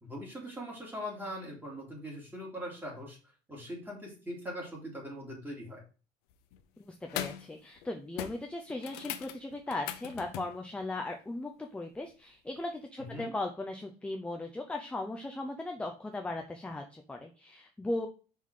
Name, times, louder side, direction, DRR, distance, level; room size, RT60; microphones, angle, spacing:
voice 1, 0.0-3.2 3.5-5.8 13.1-13.3, equal, 10° right, -2 dB, 2.5 m, -41 dB
sound 1, 6.3-6.6 7.0-7.5 7.8-7.9 8.2-10.6 12.6-12.7, left 12 dB, 85° left, 0.7 m, -40 dB
voice 2, 6.8-18.1, left 2 dB, 5° left, 3 dB, 0.5 m, -38 dB
5.6 x 3.7 x 4.8 m, 0.36 s
cardioid pair, 140°, 16 cm